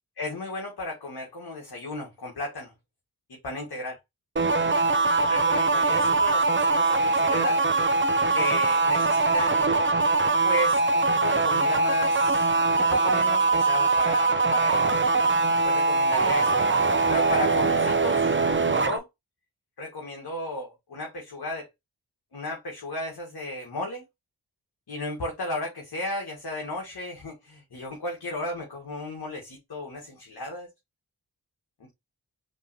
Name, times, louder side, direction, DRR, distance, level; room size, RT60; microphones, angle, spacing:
voice 1, 0.2-2.7 3.4-3.9 5.3-7.6 8.3-9.8 10.4-12.5 12.8-15.0 15.6-16.6 17.1-19.1 19.8-21.7 22.3-24.0 24.9-30.7, left 2 dB, 75° left, 1.9 m, -34 dB
sound 1, 4.4-19.0, right 3 dB, 30° right, 0.8 m, -22 dB
5.2 x 3.2 x 2.9 m
cardioid pair, 45°, 39 cm